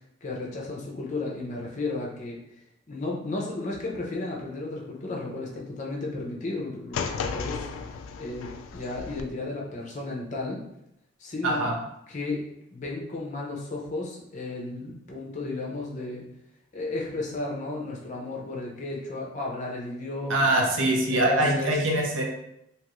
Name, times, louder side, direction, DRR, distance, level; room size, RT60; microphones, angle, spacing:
voice 1, 0.2-2.4 2.9-7.7 8.2-10.6 11.2-11.7 12.1-12.4 12.7-16.3 16.7-20.6 21.1-21.8, left 2 dB, 40° left, -2 dB, 0.6 m, -33 dB
sound 1, 6.9-9.2, left 5 dB, 90° left, 0.3 m, -34 dB
voice 2, 11.4-11.8 20.3-22.2, right 1 dB, 75° right, 0 dB, 0.7 m, -23 dB
2.9 x 2.4 x 3.0 m, 0.79 s
head